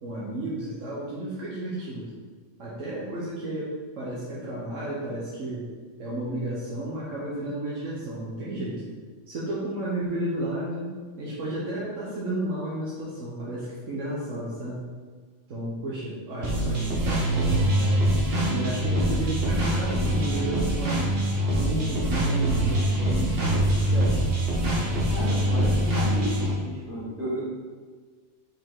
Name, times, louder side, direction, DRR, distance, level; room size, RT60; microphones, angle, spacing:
voice 1, 0.0-2.1 2.6-5.7 6.0-8.8 9.3-14.8 15.5-18.0 18.5-21.1 21.5-24.2, right 1 dB, 90° right, -7 dB, 1.4 m, -33 dB
sound 1, 16.4-26.5, right 1 dB, 55° right, 1.4 m, -24 dB
voice 2, 25.1-27.4, equal, 10° right, -7 dB, 1.6 m, -33 dB
5.5 x 4.7 x 3.8 m, 1.5 s
omnidirectional pair, 1.3 m